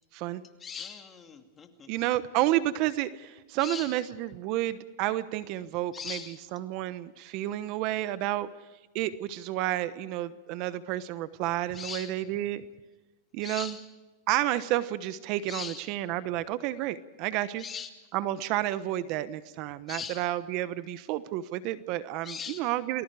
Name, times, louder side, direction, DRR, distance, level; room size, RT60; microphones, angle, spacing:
voice 1, 0.6-1.9 3.6-4.0 5.9-6.4 11.7-12.1 13.4-13.9 15.5-15.9 17.6-17.9 19.9-20.3 22.2-22.6, left 7 dB, 20° left, 5 dB, 2.6 m, -40 dB
voice 2, 1.9-8.5 8.9-12.6 13.3-13.8 14.3-17.6 18.1-23.0, right 14 dB, 50° right, 14 dB, 1.0 m, -30 dB
29.0 x 20.5 x 5.0 m, 1.2 s
supercardioid pair, 130°, 0 cm